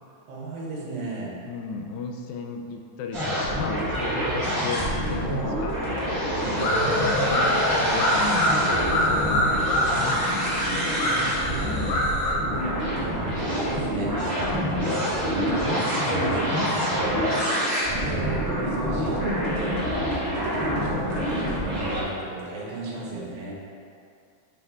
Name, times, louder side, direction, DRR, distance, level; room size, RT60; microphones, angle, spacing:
voice 1, 0.3-1.4 4.0-4.5 6.3-6.6 10.6-12.0 12.6-17.2 17.9-23.5, right 3 dB, 75° right, -5 dB, 2.9 m, -35 dB
voice 2, 1.5-5.8 6.4-10.2 11.6-12.0, left 4 dB, 80° left, 3 dB, 2.3 m, -35 dB
sound 1, 3.1-22.0, equal, 45° right, 0.8 m, -26 dB
sound 2, 6.6-12.3, left 1 dB, 60° left, 1.6 m, -25 dB
7.8 x 4.7 x 3.6 m, 2.4 s
omnidirectional pair, 4.2 m